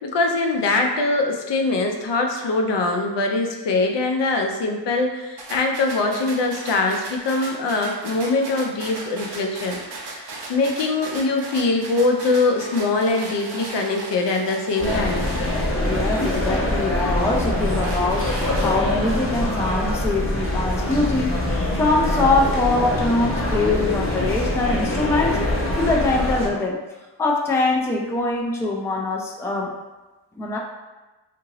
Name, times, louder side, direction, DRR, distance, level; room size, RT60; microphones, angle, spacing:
voice 1, 0.0-9.8 10.1-10.2 10.5-15.2, left 3 dB, 70° left, 2 dB, 0.6 m, -22 dB
sound 1, 5.4-17.0 17.5-19.1, right 2 dB, 60° right, 0.7 m, -37 dB
sound 2, 14.8-26.5, left 1 dB, 30° left, 0.7 m, -24 dB
voice 2, 15.8-18.3 18.6-25.4 25.8-26.8 27.2-29.7 30.4-30.6, left 2 dB, 5° left, -1 dB, 0.3 m, -23 dB
2.7 x 2.6 x 2.9 m, 1.1 s
cardioid pair, 70°, 44 cm